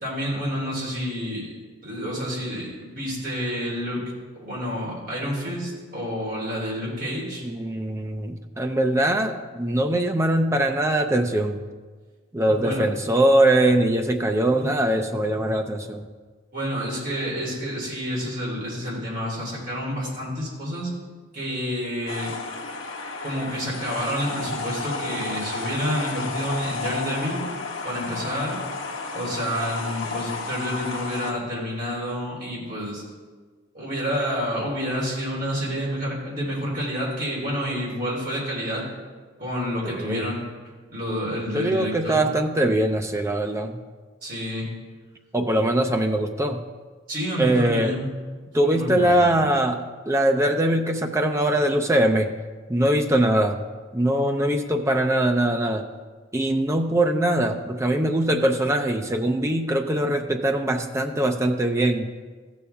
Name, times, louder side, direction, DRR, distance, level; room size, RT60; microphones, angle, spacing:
voice 1, 0.0-1.5 1.8-4.0 4.3-7.4 12.4-12.9 16.5-20.9 21.3-22.3 23.2-27.4 27.8-28.6 29.1-33.0 33.7-38.9 39.4-40.4 40.9-42.2 44.2-44.7 47.1-48.1 48.6-49.3, equal, 45° right, -5 dB, 3.4 m, -29 dB
voice 2, 7.4-11.6 12.3-16.1 39.8-40.3 41.5-43.8 45.3-46.6 47.4-48.0 48.5-52.3 52.7-53.6 53.9-55.9 56.3-62.1, right 1 dB, 15° right, 5 dB, 0.5 m, -22 dB
sound 1, 22.1-31.3, left 4 dB, 80° left, 1.0 m, -32 dB
14.5 x 7.1 x 3.4 m, 1.4 s
head